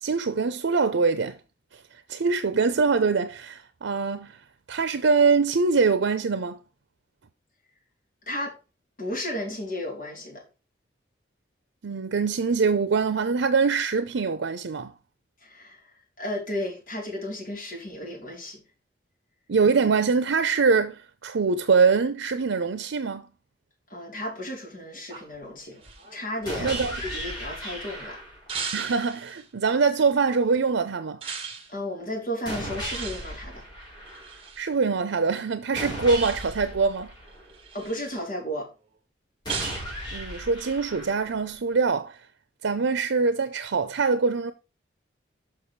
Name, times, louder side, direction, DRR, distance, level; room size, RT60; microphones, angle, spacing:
voice 1, 0.0-1.4 1.7-4.4 4.7-6.6 11.8-14.9 19.5-23.3 26.6-27.0 28.7-31.2 34.6-37.1 40.1-42.3 42.6-44.5, right 4 dB, 90° right, 0.6 m, -24 dB
voice 2, 9.0-10.4 15.4-18.6 23.9-25.8 26.1-28.2 31.7-33.6 37.7-38.7, left 1 dB, 45° left, 3.6 m, -34 dB
sound 1, 25.1-27.7 28.5-29.5 31.2-31.7 32.8-34.7 36.1-36.8 37.3-38.2 39.5-39.9, right 6 dB, 30° right, 1.7 m, -38 dB
sound 2, 26.4-28.5 32.4-34.5 35.7-37.8 39.4-41.5, equal, 25° left, 3.8 m, -36 dB
6.8 x 5.9 x 4.6 m
head